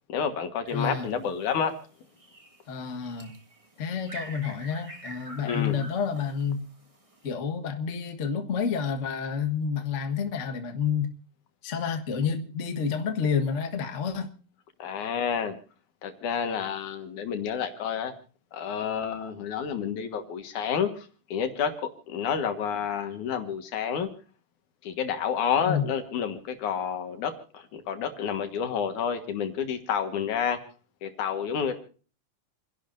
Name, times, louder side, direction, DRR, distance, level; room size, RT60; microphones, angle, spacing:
voice 1, 0.1-1.7 5.4-5.8 14.8-15.6 16.0-18.1 18.5-24.1 24.8-30.6 31.0-31.8, left 7 dB, 70° left, 7 dB, 2.9 m, -29 dB
sound 1, 0.6-1.7 2.2-7.3, right 1 dB, 25° right, 0.7 m, -46 dB
voice 2, 0.7-1.1 2.7-3.3 3.8-6.7 7.2-11.1 11.6-14.3 25.6-25.8, left 6 dB, 45° left, 5 dB, 1.0 m, -29 dB
29.5 x 11.0 x 2.6 m, 0.39 s
omnidirectional pair, 3.6 m